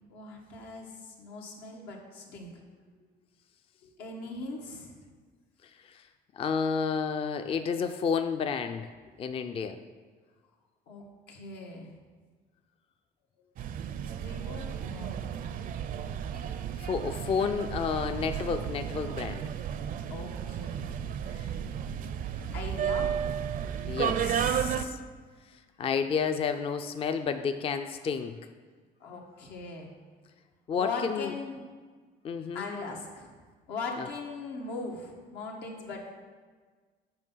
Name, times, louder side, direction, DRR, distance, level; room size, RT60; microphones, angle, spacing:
voice 1, 0.1-2.5 3.8-5.0 10.9-11.9 14.1-15.2 16.6-16.8 20.1-20.9 21.2-21.5 22.4-23.2 25.9-26.0 29.0-29.9 30.8-31.6 32.5-33.3 33.7-36.1, left 3 dB, 90° left, 0 dB, 1.4 m, -40 dB
voice 2, 6.4-8.9 9.2-9.8 16.8-19.4 23.9-25.0 25.8-28.4 30.7-31.3 32.2-32.7, left 6 dB, 35° left, 8 dB, 0.4 m, -30 dB
sound 1, 13.6-24.9, right 8 dB, 55° right, 0.5 m, -33 dB
7.6 x 4.7 x 5.6 m, 1.5 s
cardioid pair, 110°, 17 cm